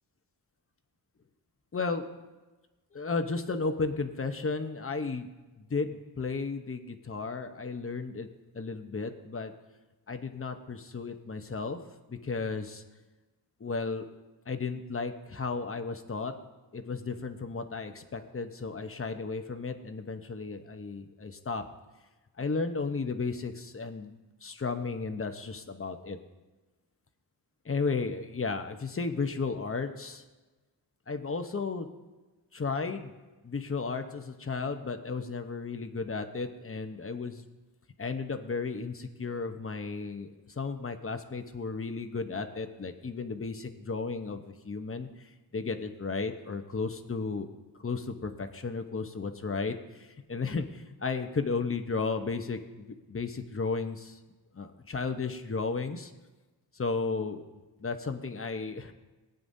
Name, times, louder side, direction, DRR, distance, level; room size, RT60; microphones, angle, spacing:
voice 1, 1.7-2.1 2.9-5.3 5.6-8.3 8.5-9.5 10.1-11.8 12.1-12.8 13.6-14.1 14.5-16.3 16.7-21.6 22.4-26.2 27.6-30.2 31.1-31.9 32.5-33.1 33.4-37.5 38.0-47.5 47.8-54.2 54.5-56.1 56.7-57.5 57.8-58.9, left 4 dB, 30° left, 7 dB, 1.0 m, -34 dB
19.0 x 9.2 x 2.7 m, 1.2 s
wide cardioid pair, 85°, 42 cm